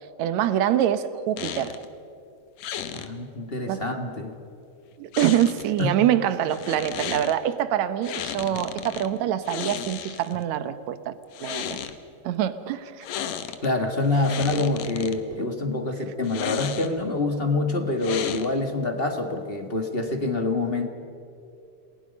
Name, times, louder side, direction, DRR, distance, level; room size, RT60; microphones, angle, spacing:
voice 1, 0.2-1.7 3.7-3.8 5.0-11.1 11.4-11.8 12.2-13.0, right 11 dB, 75° right, 12 dB, 2.3 m, -25 dB
sound 1, 1.4-1.9 2.6-3.1 5.1-5.8 6.5-7.3 8.0-9.1 9.4-10.4 11.2-12.0 13.0-13.7 14.0-15.2 16.2-17.1 18.0-18.7, left 9 dB, 75° left, 2.4 m, -34 dB
voice 2, 2.9-4.3 5.8-5.9 8.5-8.6 13.6-20.9, left 2 dB, 25° left, 5 dB, 1.3 m, -26 dB
29.5 x 20.5 x 5.3 m, 2.6 s
omnidirectional pair, 3.3 m